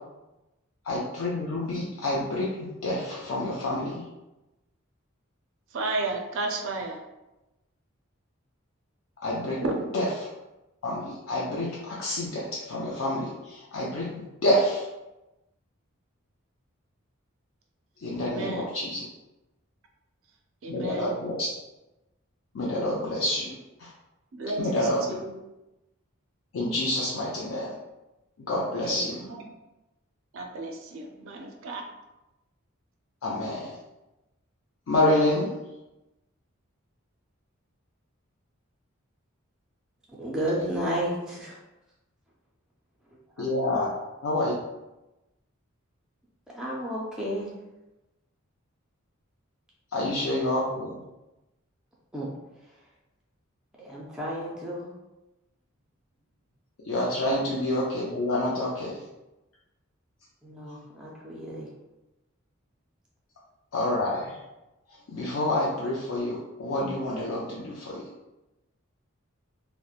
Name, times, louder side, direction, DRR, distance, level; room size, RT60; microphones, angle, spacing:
voice 1, 0.9-4.0 9.2-9.6 9.9-10.0 10.8-13.3 13.7-14.1 14.4-14.8 18.0-19.0 20.7-21.5 22.5-23.5 24.6-25.0 26.5-27.7 28.5-29.2 33.2-33.7 34.9-35.5 43.4-43.9 44.2-44.6 49.9-51.0 56.9-58.9 63.7-64.3 65.1-68.0, left 1 dB, 70° left, -5 dB, 0.4 m, -27 dB
voice 2, 5.7-7.0 9.6-9.9 18.2-18.7 20.6-21.2 24.3-25.3 28.9-29.4 30.3-31.9, right 2 dB, 65° right, 3 dB, 0.4 m, -33 dB
voice 3, 40.2-41.6 43.4-43.5 46.5-47.5 52.1-52.3 52.6-52.9 53.8-54.9 60.4-61.7, equal, 5° right, -5 dB, 0.3 m, -32 dB
2.8 x 2.0 x 2.3 m, 1.0 s
head